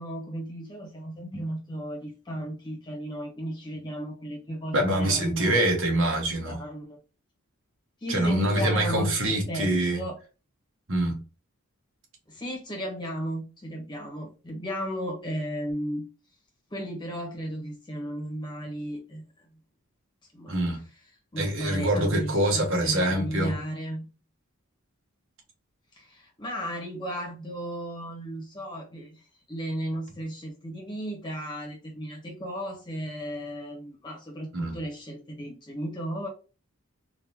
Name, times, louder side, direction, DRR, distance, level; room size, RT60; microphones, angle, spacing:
voice 1, 0.0-5.6 6.4-7.0 8.0-10.2 12.3-16.1 16.7-19.5 20.3-20.6 21.3-24.1 25.9-36.3, equal, 20° left, 1.1 m, -35 dB
voice 2, 4.7-6.6 8.1-10.0 10.9-11.2 20.5-20.8 21.4-23.5 34.5-34.8, right 1 dB, 65° right, 1.2 m, -25 dB
3.7 x 2.6 x 2.8 m
head